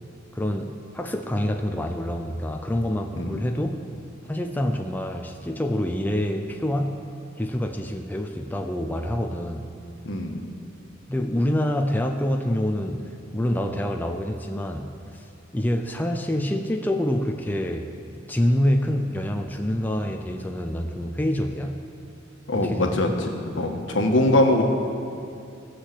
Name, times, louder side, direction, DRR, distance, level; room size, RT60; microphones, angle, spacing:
voice 1, 0.3-3.8 4.3-7.0 7.4-9.7 11.1-15.3 15.5-17.9 18.3-21.8 22.5-23.1, left 1 dB, 10° left, 3 dB, 0.6 m, -26 dB
voice 2, 10.0-10.4 22.5-23.3 23.5-24.6, left 1 dB, 70° left, 2 dB, 1.5 m, -22 dB
18.0 x 6.5 x 7.8 m, 2.5 s
head